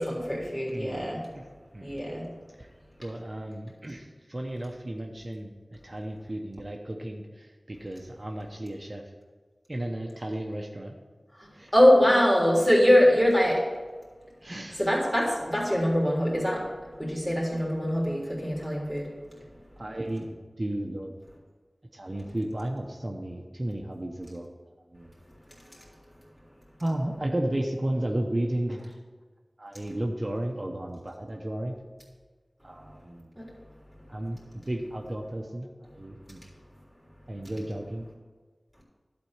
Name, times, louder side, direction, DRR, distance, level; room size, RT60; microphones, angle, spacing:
voice 1, 0.0-1.2 1.8-2.2 11.7-13.6 14.8-16.6 17.0-19.0 33.4-33.5, equal, 20° left, -5 dB, 3.5 m, -22 dB
voice 2, 0.7-1.4 1.7-2.0 2.6-2.7 3.0-5.5 5.8-9.0 9.7-11.0 11.5-11.7 14.4-14.9 19.8-21.1 21.9-24.5 24.9-25.1 26.8-29.0 29.6-31.7 32.6-33.4 34.1-36.4 37.3-38.1, right 1 dB, 40° right, 2 dB, 0.9 m, -33 dB
11.5 x 4.4 x 7.3 m, 1.4 s
wide cardioid pair, 55°, 0 cm